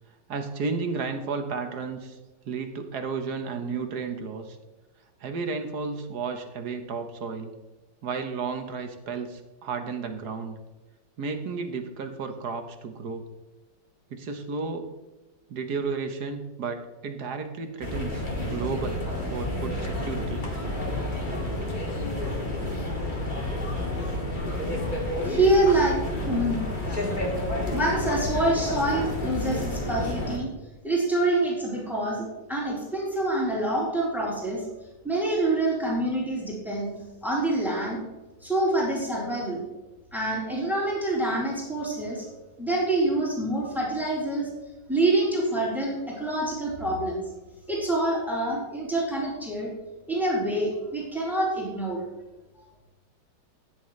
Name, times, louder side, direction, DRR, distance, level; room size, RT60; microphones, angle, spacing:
voice 1, 0.3-2.2 2.4-4.6 5.2-7.5 8.0-10.6 11.2-13.3 14.1-14.9 15.5-20.4, right 4 dB, 60° right, 7 dB, 1.5 m, -33 dB
sound 1, 17.8-30.4, left 1 dB, 25° left, 2.3 m, -30 dB
voice 2, 25.2-26.6 27.7-30.5 30.8-34.7 35.0-36.9 37.2-38.0 38.4-39.6 40.1-42.3 42.6-44.5 44.9-47.2 47.7-49.7 50.1-52.0 52.5-52.6, right 1 dB, ahead, -5 dB, 3.9 m, -26 dB
14.0 x 9.8 x 3.2 m, 1.1 s
omnidirectional pair, 2.0 m